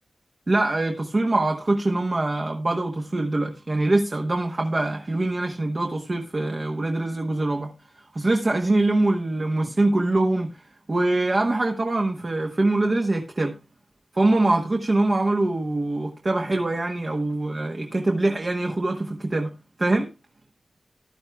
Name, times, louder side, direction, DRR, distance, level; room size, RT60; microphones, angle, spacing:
voice 1, 0.5-7.7 8.1-10.5 10.9-13.6 14.1-19.5 19.8-20.1, right 2 dB, 35° right, 1.1 m, -23 dB
14.5 x 11.0 x 2.3 m
wide cardioid pair, 120°, 0 cm